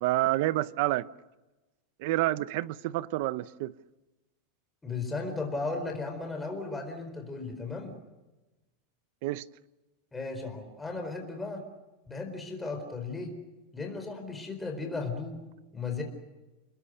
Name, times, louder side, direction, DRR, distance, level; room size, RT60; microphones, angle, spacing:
voice 1, 0.0-1.1 2.0-3.7 9.2-9.5, right 17 dB, 50° right, 0.7 m, -28 dB
voice 2, 4.8-7.9 10.1-11.6 12.1-13.4 13.7-15.4 15.7-16.0, left 3 dB, 10° left, 4.4 m, -35 dB
29.5 x 21.5 x 6.6 m
supercardioid pair, 170°, 0 cm